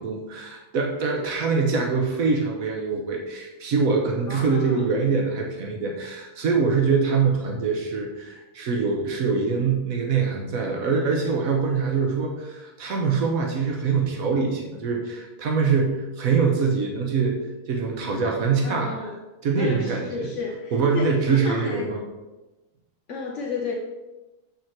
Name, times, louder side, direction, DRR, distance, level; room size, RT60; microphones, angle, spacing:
voice 1, 0.0-19.1 19.4-20.3 20.7-22.0, right 5 dB, 85° right, 1 dB, 1.4 m, -24 dB
voice 2, 4.3-4.9 18.6-19.2 19.6-21.9 23.1-23.7, left 3 dB, 65° left, 0 dB, 1.1 m, -32 dB
7.3 x 5.5 x 4.6 m, 1.1 s
omnidirectional pair, 1.4 m